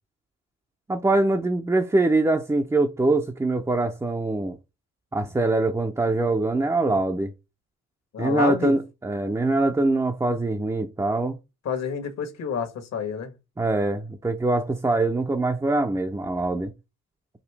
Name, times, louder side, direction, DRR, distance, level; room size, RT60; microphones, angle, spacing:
voice 1, 0.9-4.6 5.1-7.3 8.2-11.4 13.6-16.7, right 2 dB, 10° right, 0.6 m, -23 dB
voice 2, 8.1-8.7 11.6-13.3, left 6 dB, 60° left, 1.4 m, -28 dB
5.0 x 2.7 x 3.3 m
cardioid pair, 90°, 30 cm